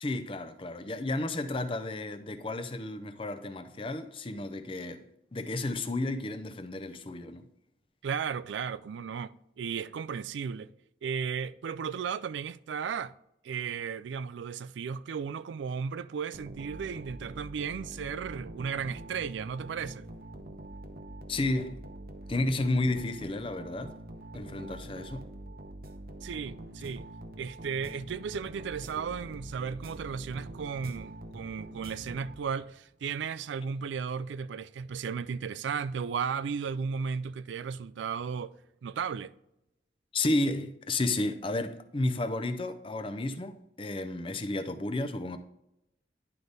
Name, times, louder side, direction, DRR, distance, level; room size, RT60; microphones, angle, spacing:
voice 1, 0.0-5.0 5.3-7.4 21.3-21.8 22.3-23.9 24.3-25.2 40.1-45.4, left 2 dB, 30° left, 0.5 m, -32 dB
voice 2, 8.0-10.7 11.0-13.1 13.4-20.1 26.2-27.1 27.4-38.5 38.8-39.4, right 6 dB, 80° right, 0.3 m, -35 dB
sound 1, 16.3-32.8, right 1 dB, 55° right, 0.8 m, -45 dB
11.0 x 4.0 x 3.3 m
head